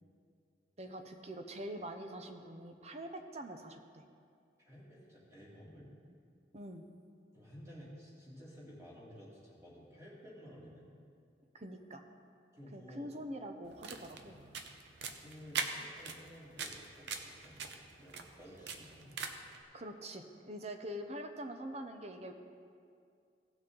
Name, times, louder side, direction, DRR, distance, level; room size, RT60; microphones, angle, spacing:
voice 1, 0.8-4.0 6.1-6.2 6.5-6.8 11.5-12.0 12.7-14.4 19.7-22.3, right 1 dB, 35° right, 6 dB, 0.7 m, -44 dB
voice 2, 4.6-5.9 7.3-10.9 12.5-13.1 14.1-14.3 15.2-17.7 18.0-19.1, equal, 15° right, -7 dB, 2.7 m, -53 dB
sound 1, 13.6-19.6, right 5 dB, 75° right, 0.8 m, -43 dB
17.0 x 6.2 x 3.9 m, 2.3 s
head